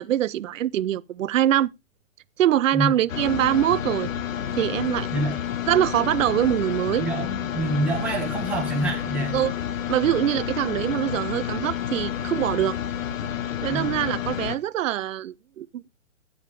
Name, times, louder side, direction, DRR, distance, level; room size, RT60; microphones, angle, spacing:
voice 1, 0.0-1.7 2.4-4.1 4.6-5.1 5.7-7.1 9.3-9.5 9.9-12.8 13.6-15.9, right 12 dB, 70° right, 0.6 m, -23 dB
sound 1, 3.1-14.6, left 10 dB, 70° left, 1.3 m, -30 dB
voice 2, 7.0-9.4 13.7-14.0, right 1 dB, 5° right, 1.6 m, -27 dB
13.0 x 8.5 x 3.3 m
hypercardioid pair, 175°, 41 cm